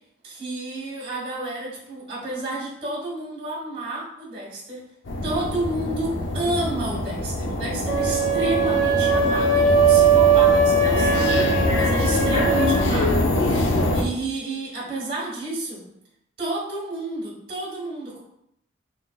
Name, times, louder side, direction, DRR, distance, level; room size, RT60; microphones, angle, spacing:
voice 1, 0.2-4.8 5.2-15.8 16.4-18.2, right 2 dB, 35° right, -3 dB, 1.5 m, -31 dB
sound 1, 5.1-14.0, left 1 dB, 85° left, 0.6 m, -24 dB
sound 2, 7.9-12.8, right 5 dB, 15° left, 0.9 m, -20 dB
3.8 x 3.7 x 2.3 m, 0.75 s
head